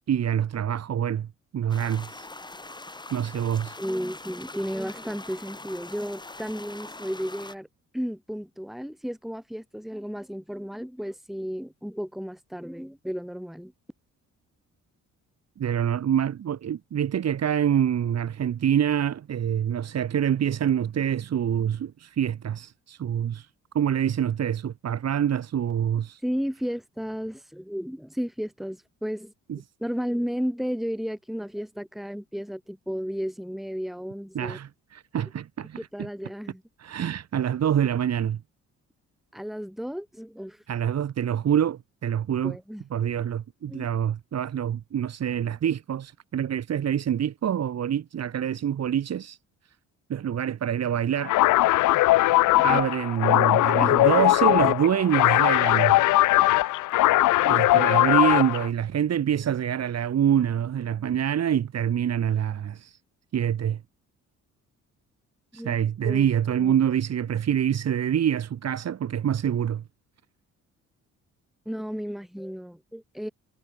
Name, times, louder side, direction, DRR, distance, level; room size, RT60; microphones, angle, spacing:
voice 1, 0.1-1.3 1.5-2.3 3.1-3.8 15.6-23.5 23.7-26.2 29.5-29.6 34.3-36.1 36.8-38.4 40.7-42.6 42.9-49.4 50.1-51.3 52.6-56.0 57.4-63.0 63.3-63.8 65.5-69.8, right 9 dB, 60° right, 2.8 m, -26 dB
sound 1, 1.7-7.5, left 2 dB, 15° left, 3.2 m, -42 dB
voice 2, 3.8-7.7 7.9-13.7 26.2-29.3 29.8-34.6 35.8-36.6 39.3-40.6 42.4-42.8 43.7-43.9 52.6-52.8 53.3-54.6 65.5-65.7 66.0-66.3 66.6-66.8 71.7-73.3, equal, ahead, 3.8 m, -33 dB
sound 2, 51.2-58.7, left 17 dB, 85° left, 0.9 m, -20 dB
cardioid pair, 90°, 30 cm